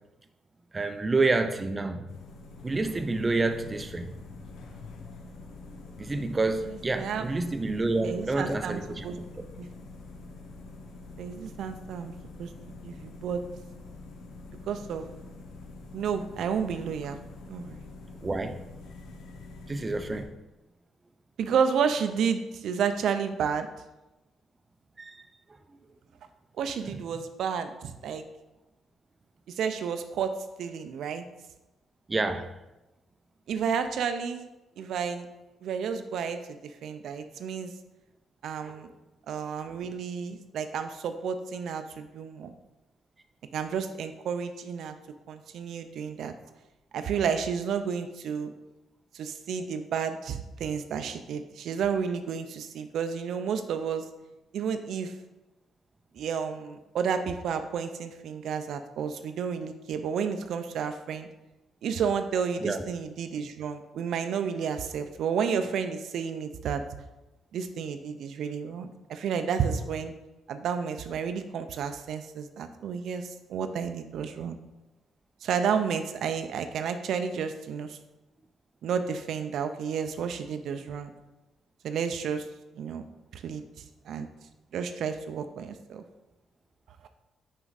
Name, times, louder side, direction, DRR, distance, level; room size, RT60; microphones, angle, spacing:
voice 1, 0.7-2.1 2.6-4.1 6.0-9.5 18.2-18.6 19.7-20.3 25.0-25.2 32.1-32.5 38.6-38.9 62.6-62.8, right 3 dB, 25° right, 7 dB, 0.5 m, -28 dB
sound 1, 2.1-20.2, left 3 dB, 80° left, 0.8 m, -45 dB
voice 2, 8.0-9.2 9.6-9.7 11.2-12.1 12.4-12.5 12.8-13.4 14.7-15.1 15.9-17.2 17.5-17.8 21.4-23.7 26.6-28.2 29.5-31.2 33.5-34.4 34.8-35.3 35.6-37.7 38.4-38.9 39.3-42.5 43.5-44.9 45.3-46.3 46.9-48.5 49.1-54.0 54.5-55.1 56.1-61.3 61.8-66.8 67.5-70.1 70.5-74.6 75.4-78.0 78.8-81.1 81.8-82.5 82.8-83.0 83.3-83.6 84.1-84.3 84.7-86.0, right 7 dB, 70° right, 8 dB, 0.5 m, -31 dB
5.8 x 5.1 x 4.0 m, 1.0 s
cardioid pair, 90°, 0 cm